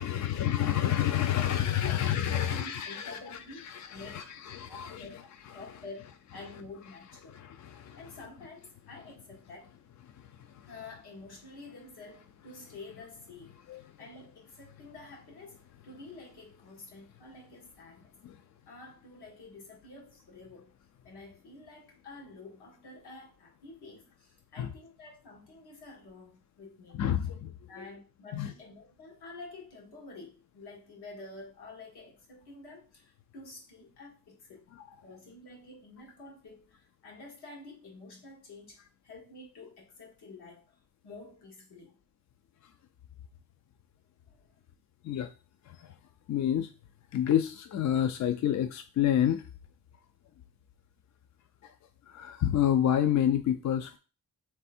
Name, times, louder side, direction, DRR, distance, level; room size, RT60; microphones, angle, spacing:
voice 1, 0.0-5.7 7.3-8.0 10.1-10.7 13.7-13.8 18.2-18.4 24.6-24.7 26.9-27.9 28.3-28.5 34.8-34.9 45.0-45.3 45.6-45.9 46.3-46.7 47.1-49.4 51.6-51.7 52.1-54.0, left 10 dB, 45° left, 0.4 m, -29 dB
voice 2, 2.3-5.2 5.5-7.4 8.0-9.7 10.7-18.1 18.7-20.8 21.0-27.0 27.7-34.7 35.0-42.0 44.3-44.6, left 3 dB, 75° left, 1.7 m, -49 dB
3.4 x 3.4 x 4.2 m
cardioid pair, 110°, 39 cm